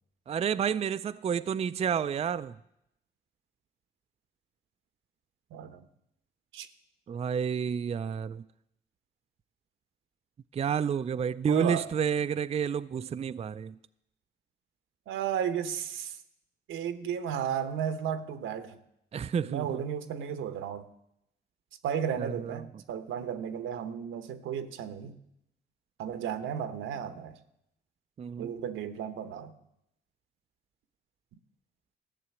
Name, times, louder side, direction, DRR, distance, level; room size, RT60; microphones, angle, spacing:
voice 1, 0.3-2.5 7.1-8.4 10.5-13.8 19.1-19.6 22.2-22.6 28.2-28.5, right 7 dB, 30° right, 0.4 m, -30 dB
voice 2, 5.5-5.8 6.5-6.7 11.4-11.9 15.1-16.2 16.7-18.8 19.4-20.9 21.8-25.2 26.0-27.4 28.4-29.5, right 8 dB, 80° right, 1.1 m, -34 dB
14.0 x 6.8 x 9.5 m
cardioid pair, 90°, 20 cm